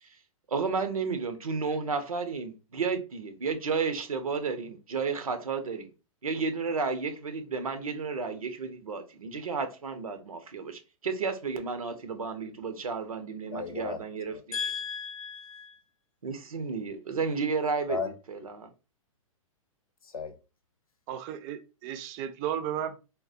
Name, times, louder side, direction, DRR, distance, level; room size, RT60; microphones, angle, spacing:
voice 1, 0.5-5.9 6.2-14.6 16.2-18.7, right 5 dB, 90° right, 0.8 m, -32 dB
voice 2, 13.5-14.0 14.3-15.8 17.9-18.1 20.0-20.3, left 5 dB, 90° left, 0.7 m, -35 dB
voice 3, 21.1-23.0, right 10 dB, 35° right, 0.5 m, -34 dB
3.7 x 2.3 x 2.7 m
hypercardioid pair, 120°, 18 cm